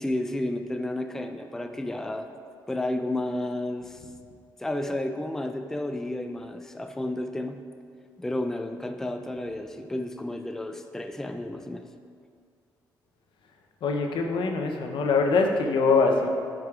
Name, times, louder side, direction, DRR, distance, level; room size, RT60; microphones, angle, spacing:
voice 1, 0.0-2.3 2.7-4.1 4.6-7.6 8.2-11.9, left 1 dB, 5° left, 7 dB, 0.4 m, -31 dB
voice 2, 13.8-16.3, left 4 dB, 70° left, 2 dB, 0.7 m, -23 dB
9.2 x 4.9 x 2.4 m, 2.2 s
supercardioid pair, 55°, 9 cm